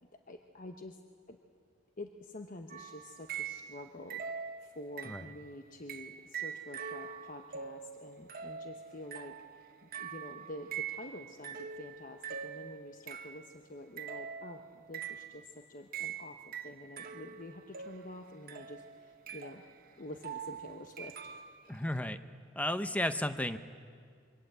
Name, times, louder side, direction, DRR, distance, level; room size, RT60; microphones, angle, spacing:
voice 1, 0.3-1.0 1.3-1.4 2.0-4.2 4.6-19.6 20.0-21.4, left 1 dB, 40° left, 5 dB, 1.0 m, -48 dB
sound 1, 2.7-3.8 4.1-5.4 5.9-13.5 14.0-15.4 15.9-21.7, right 7 dB, 45° right, 1.2 m, -44 dB
voice 2, 21.7-22.2 22.6-23.6, left 1 dB, 5° left, 10 dB, 0.8 m, -33 dB
26.5 x 24.0 x 8.2 m, 2.1 s
head